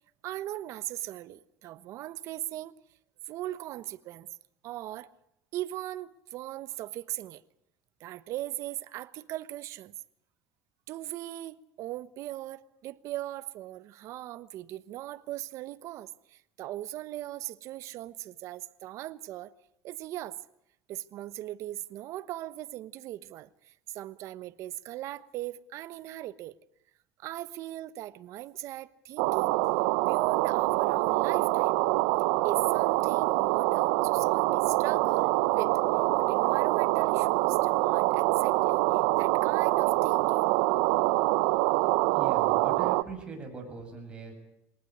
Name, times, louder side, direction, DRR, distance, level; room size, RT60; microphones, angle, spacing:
voice 1, 0.2-2.7 3.3-4.3 4.6-5.1 5.5-7.4 8.0-9.9 10.9-19.5 19.8-20.4 20.9-26.5 27.2-29.6 30.0-31.8 32.4-35.8 36.2-40.4, right 14 dB, 55° right, 1.1 m, -39 dB
sound 1, 29.2-43.0, right 20 dB, 80° right, 0.9 m, -25 dB
voice 2, 42.1-44.3, right 4 dB, 15° right, 7.4 m, -41 dB
23.0 x 19.0 x 9.7 m
cardioid pair, 140°, 6 cm